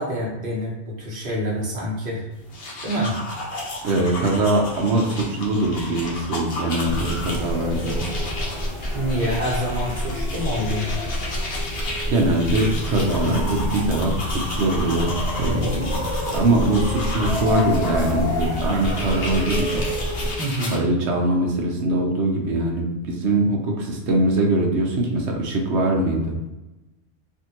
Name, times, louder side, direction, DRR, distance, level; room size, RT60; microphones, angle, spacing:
voice 1, 0.0-2.3 2.8-3.2 8.9-10.9 20.2-20.8, equal, 50° right, -4 dB, 1.2 m, -27 dB
sound 1, 2.4-20.8, left 2 dB, 55° left, 1.0 m, -33 dB
voice 2, 3.8-8.0 11.7-15.1 15.4-16.0 16.3-19.8 20.7-26.4, right 2 dB, 70° right, 0 dB, 1.0 m, -22 dB
sound 2, 6.8-20.4, left 1 dB, 30° left, 0.7 m, -27 dB
3.4 x 2.6 x 2.9 m, 1.0 s
omnidirectional pair, 1.2 m